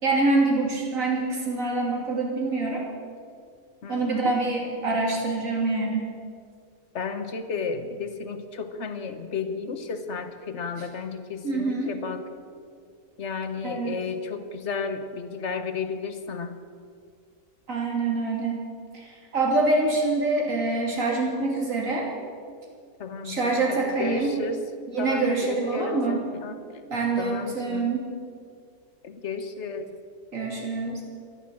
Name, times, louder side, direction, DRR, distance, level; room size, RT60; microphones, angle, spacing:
voice 1, 0.0-2.8 3.9-6.0 10.8-10.9 11.4-12.0 13.6-14.0 17.7-18.7 18.9-22.1 23.2-24.4 24.9-26.2 26.9-28.1 30.3-31.0, right 3 dB, 60° right, -1 dB, 3.2 m, -25 dB
voice 2, 3.8-4.3 6.9-12.2 13.2-16.5 23.0-24.6 25.0-26.6 27.2-27.9 29.0-29.9, left 5 dB, 50° left, 9 dB, 1.2 m, -33 dB
13.5 x 11.0 x 7.5 m, 2.2 s
omnidirectional pair, 1.6 m